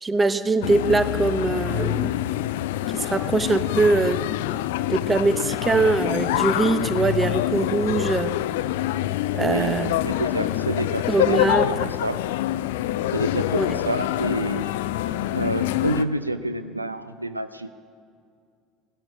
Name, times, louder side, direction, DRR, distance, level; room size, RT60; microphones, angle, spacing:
voice 1, 0.0-2.2 2.9-4.2 4.9-8.4 9.3-9.9 11.1-12.0 13.6-13.7, right 3 dB, 20° right, 13 dB, 0.8 m, -22 dB
sound 1, 0.6-16.0, left 14 dB, 65° left, 0.4 m, -26 dB
voice 2, 9.3-11.4 11.6-12.2 13.1-14.7 15.3-17.7, right 1 dB, 85° right, 12 dB, 0.4 m, -28 dB
17.5 x 12.0 x 6.4 m, 2.3 s
figure-of-eight pair, 65°, 0 cm